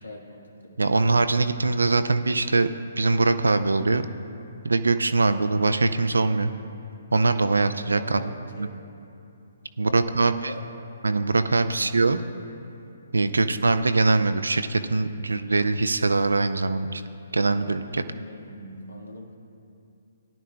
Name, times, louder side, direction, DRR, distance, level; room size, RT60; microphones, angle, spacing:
voice 1, 0.0-0.8 7.9-8.8 9.8-10.7 11.6-11.8 13.2-13.5 18.1-19.3, left 2 dB, 75° left, 2 dB, 1.6 m, -41 dB
voice 2, 0.8-2.7 3.0-4.1 4.6-6.5 7.1-8.2 8.6-8.7 9.8-10.5 11.0-12.2 13.1-17.0 17.3-18.0, right 3 dB, 70° right, 10 dB, 0.5 m, -22 dB
18.0 x 11.0 x 2.3 m, 2.7 s
figure-of-eight pair, 130°, 0 cm